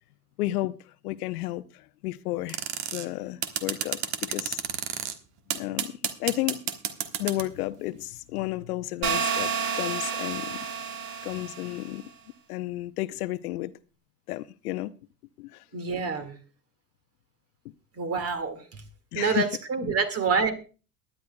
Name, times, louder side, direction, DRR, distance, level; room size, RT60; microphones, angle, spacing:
voice 1, 0.4-0.7 1.0-2.6 2.9-4.6 5.5-5.9 6.2-6.6 7.2-10.7 11.2-12.0 12.5-13.7 14.3-14.9 15.4-15.6 17.6-17.7 19.1-19.5 19.9-20.0, left 17 dB, 65° left, 0.7 m, -32 dB
sound 1, 2.5-3.1 3.4-5.1 5.5-7.5, right 10 dB, 50° right, 1.4 m, -30 dB
sound 2, 9.0-11.9, right 7 dB, 65° right, 2.3 m, -30 dB
voice 2, 15.7-16.4 17.9-18.8 19.1-20.5, right 5 dB, 30° right, 2.0 m, -27 dB
22.0 x 10.5 x 2.2 m
hypercardioid pair, 85°, 49 cm